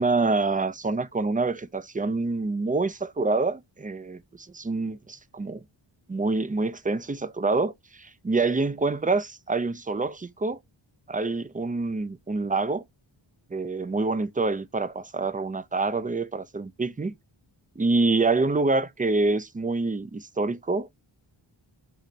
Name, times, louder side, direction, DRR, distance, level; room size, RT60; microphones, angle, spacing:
voice 1, 0.0-5.6 6.1-10.6 11.1-12.8 13.5-17.1 17.8-20.9, right 3 dB, 20° right, 0.4 m, -26 dB
4.2 x 3.1 x 3.9 m
cardioid pair, 55°, 49 cm